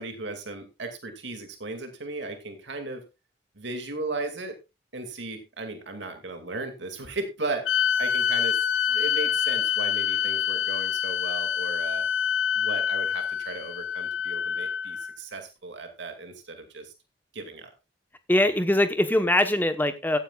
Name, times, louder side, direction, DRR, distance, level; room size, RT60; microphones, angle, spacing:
voice 1, 0.0-3.1 3.6-4.6 4.9-12.1 12.5-16.9 17.3-17.7, right 3 dB, 70° right, 6 dB, 2.3 m, -36 dB
sound 1, 7.6-15.1, left 8 dB, 75° left, 0.6 m, -26 dB
voice 2, 18.3-20.2, left 1 dB, 10° left, 9 dB, 1.0 m, -22 dB
16.5 x 9.8 x 2.4 m, 0.25 s
head